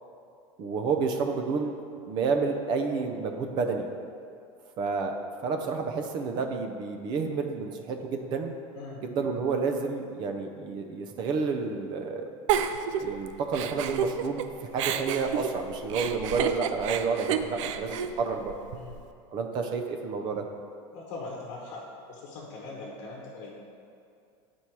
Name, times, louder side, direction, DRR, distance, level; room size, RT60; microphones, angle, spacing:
voice 1, 0.6-1.7 2.1-3.9 4.8-5.1 5.4-8.5 9.0-12.2 13.0-14.4 14.7-18.5 19.3-20.4, right 4 dB, 30° right, 4 dB, 0.5 m, -30 dB
Giggle, 12.5-14.4 14.8-19.0, right 8 dB, 85° right, 0.4 m, -30 dB
voice 2, 20.9-21.8 22.1-23.5, left 3 dB, 50° left, -3 dB, 1.1 m, -40 dB
8.3 x 4.3 x 4.6 m, 2.4 s
supercardioid pair, 175°, 16 cm